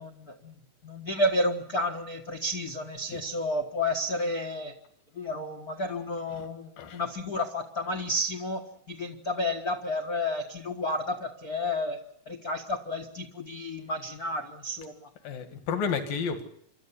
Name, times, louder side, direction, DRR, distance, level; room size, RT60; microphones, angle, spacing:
voice 1, 0.0-4.7 5.1-12.0 12.3-15.1, left 1 dB, 50° left, 3 dB, 1.1 m, -31 dB
voice 2, 15.2-16.4, left 6 dB, 75° left, 8 dB, 3.6 m, -32 dB
26.5 x 12.5 x 9.8 m, 0.69 s
omnidirectional pair, 4.2 m